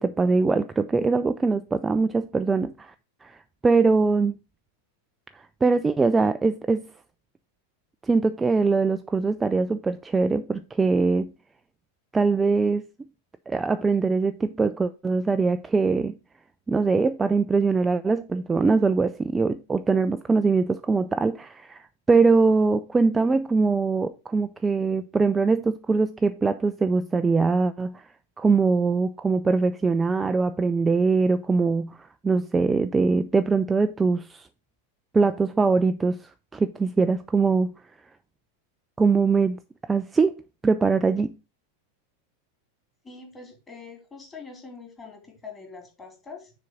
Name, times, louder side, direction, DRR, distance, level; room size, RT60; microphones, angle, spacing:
voice 1, 0.0-2.9 3.2-3.4 3.6-4.3 5.6-6.9 8.0-11.3 12.1-12.9 13.5-16.1 16.7-28.0 28.4-34.5 35.1-37.7 39.0-39.6 39.9-40.3 40.6-41.3, right 4 dB, 15° right, 0.3 m, -22 dB
voice 2, 43.0-46.5, left 4 dB, 15° left, 2.8 m, -43 dB
6.6 x 3.8 x 6.2 m
figure-of-eight pair, 90°, 0 cm